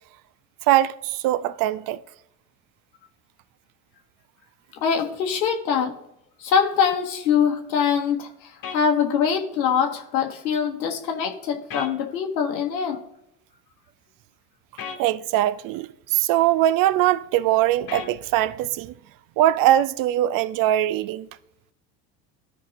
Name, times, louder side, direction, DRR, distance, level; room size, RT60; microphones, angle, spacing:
voice 1, 0.6-2.0 15.0-18.9 19.4-21.3, right 13 dB, 45° right, 0.5 m, -21 dB
voice 2, 4.8-6.0 6.4-13.0, left 7 dB, 85° left, 1.0 m, -23 dB
sound 1, 8.6-8.8 11.7-11.9 14.8-15.0 17.9-18.1, left 6 dB, 45° left, 1.4 m, -34 dB
13.0 x 4.6 x 3.0 m
hypercardioid pair, 70°, 50 cm